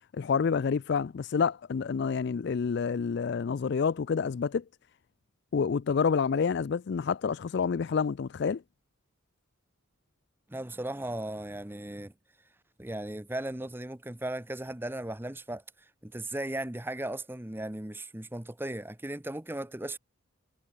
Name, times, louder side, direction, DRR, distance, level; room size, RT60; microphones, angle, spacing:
voice 1, 0.1-4.6 5.5-8.6, left 6 dB, 50° left, 0.3 m, -28 dB
voice 2, 10.5-12.1 12.8-15.6 16.0-20.0, right 1 dB, 10° right, 0.8 m, -36 dB
head